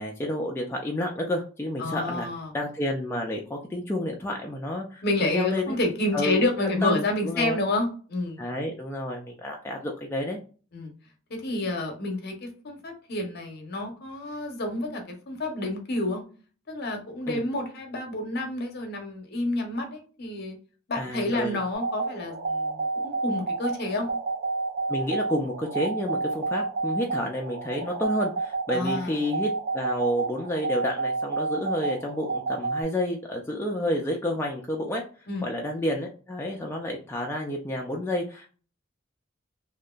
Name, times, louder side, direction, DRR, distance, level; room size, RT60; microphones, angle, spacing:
voice 1, 0.0-2.3 2.5-5.8 6.1-7.6 8.4-10.4 17.3-17.4 20.9-21.6 24.9-35.0 35.4-38.5, left 1 dB, 10° left, 0 dB, 0.3 m, -30 dB
voice 2, 1.8-2.5 5.0-8.4 10.7-10.9 11.3-16.2 16.7-20.6 20.9-24.1 28.7-29.1 35.3-35.4, left 2 dB, 55° left, 4 dB, 0.7 m, -29 dB
sound 1, 21.7-32.8, right 3 dB, 85° right, 0.6 m, -30 dB
2.8 x 2.5 x 2.2 m, 0.39 s
head